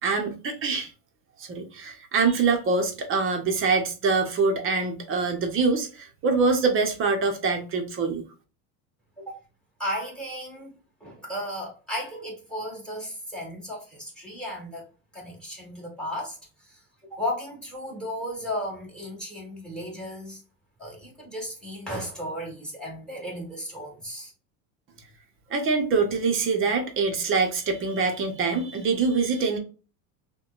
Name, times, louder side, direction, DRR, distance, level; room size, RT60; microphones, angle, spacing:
voice 1, 0.0-0.9 1.4-8.2 25.5-29.6, right 4 dB, 30° right, 0.8 m, -24 dB
voice 2, 9.8-10.7 11.0-14.9 15.1-20.4 20.8-24.3, equal, ahead, 1.7 m, -35 dB
5.7 x 2.2 x 2.4 m
supercardioid pair, 135°, 42 cm